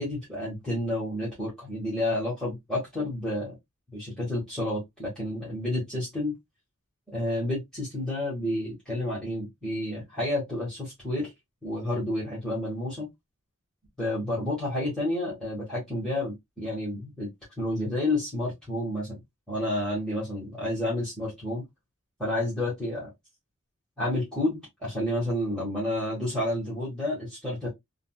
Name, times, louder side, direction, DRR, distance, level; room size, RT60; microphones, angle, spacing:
voice 1, 0.0-3.6 3.9-6.4 7.1-11.3 11.6-13.1 14.0-17.3 17.6-19.2 19.5-21.6 22.2-23.1 24.0-27.7, left 1 dB, 5° left, 1.5 m, -30 dB
3.8 x 2.5 x 2.2 m
head